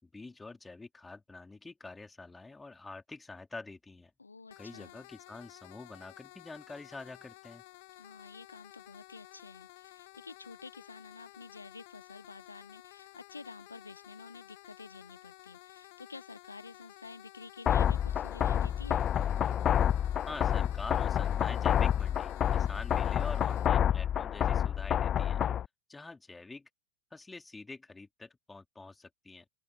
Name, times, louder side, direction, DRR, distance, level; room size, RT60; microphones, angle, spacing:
voice 1, 0.0-4.1 4.6-7.6 20.3-25.4 25.9-26.7 27.1-29.4, left 3 dB, 10° left, 3.8 m, -46 dB
voice 2, 4.2-5.0 8.0-19.0, left 4 dB, 80° left, 1.1 m, -50 dB
sound 1, 4.5-23.7, left 25 dB, 50° left, 1.3 m, -54 dB
sound 2, 17.7-25.7, left 9 dB, 25° left, 0.3 m, -28 dB
open air
figure-of-eight pair, 90°, 0 cm